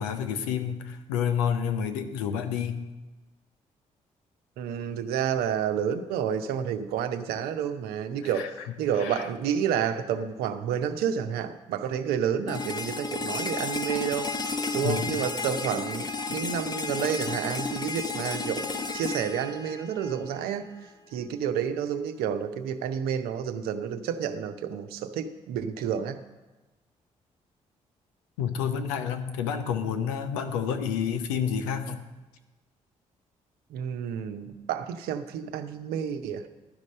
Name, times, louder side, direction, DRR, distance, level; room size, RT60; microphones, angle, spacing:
voice 1, 0.0-2.9 8.3-8.5 9.0-9.3 14.8-15.1 28.4-32.0, left 7 dB, 85° left, 8 dB, 0.7 m, -29 dB
voice 2, 4.6-14.3 14.7-20.7 21.1-26.2 33.7-36.5, right 8 dB, 75° right, 8 dB, 0.7 m, -30 dB
sound 1, 12.5-20.5, left 3 dB, 25° left, 0.7 m, -32 dB
11.5 x 5.3 x 7.3 m, 1.2 s
hypercardioid pair, 40°, 16 cm